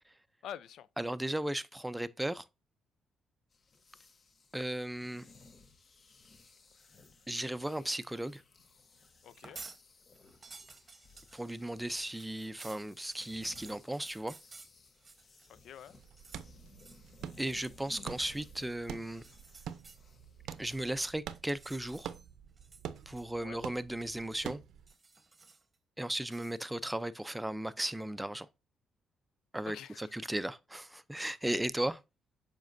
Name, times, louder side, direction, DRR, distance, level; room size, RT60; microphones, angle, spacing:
voice 1, 0.4-0.9 9.2-9.6 15.5-16.0 23.4-23.6 29.7-30.1, left 10 dB, 75° left, 0.4 m, -47 dB
voice 2, 1.0-2.4 4.5-5.3 7.3-8.4 11.3-14.4 17.4-19.2 20.6-22.1 23.1-24.6 26.0-28.5 29.5-32.0, right 1 dB, 5° right, 0.5 m, -36 dB
sound 1, 3.5-21.1, left 3 dB, 40° left, 0.9 m, -60 dB
sound 2, 9.3-9.8 10.2-15.5 15.8-16.5 16.8-17.1 17.5-17.8 19.1-20.0 20.5-22.3 22.6-23.5 23.7-24.5 24.9-25.7 26.3-26.6, right 3 dB, 25° right, 1.0 m, -54 dB
sound 3, 15.9-24.9, right 9 dB, 80° right, 0.6 m, -47 dB
7.3 x 5.2 x 2.6 m
cardioid pair, 90°, 0 cm